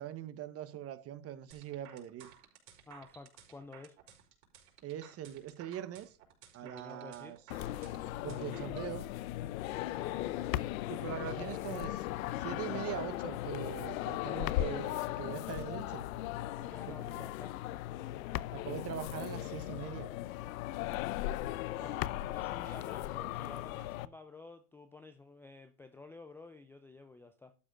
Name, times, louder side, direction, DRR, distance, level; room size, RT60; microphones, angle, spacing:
voice 1, 0.0-2.3 4.8-6.2 6.5-7.4 8.2-9.0 10.9-12.0 12.4-16.1 16.9-17.2 18.5-20.1, right 11 dB, 30° right, 1.1 m, -42 dB
sound 1, 1.5-8.9, right 9 dB, 60° right, 4.2 m, -56 dB
voice 2, 2.9-4.0 6.6-7.4 9.9-10.5 11.1-11.6 16.6-17.6 21.7-27.5, left 3 dB, 5° left, 0.4 m, -51 dB
sound 2, 7.5-24.1, left 15 dB, 65° left, 0.7 m, -37 dB
12.0 x 4.9 x 5.1 m
hypercardioid pair, 120°, 44 cm